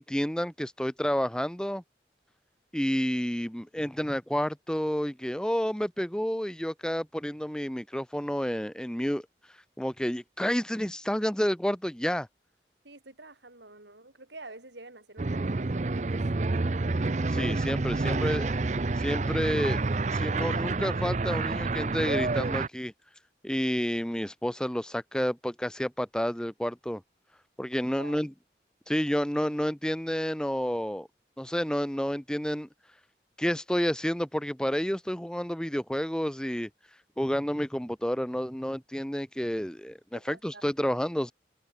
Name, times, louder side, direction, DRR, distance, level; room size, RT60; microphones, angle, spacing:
voice 1, 0.0-1.8 2.7-9.2 9.8-12.3 17.2-18.6 19.0-19.8 20.1-22.9 23.4-27.0 27.6-28.3 28.9-31.1 31.4-32.7 33.4-36.7 37.2-41.3, equal, 5° left, 0.8 m, -30 dB
voice 2, 12.8-16.2 28.0-28.3 40.1-41.0, right 2 dB, 85° right, 6.1 m, -48 dB
sound 1, 15.2-22.7, right 3 dB, 40° right, 0.6 m, -28 dB
head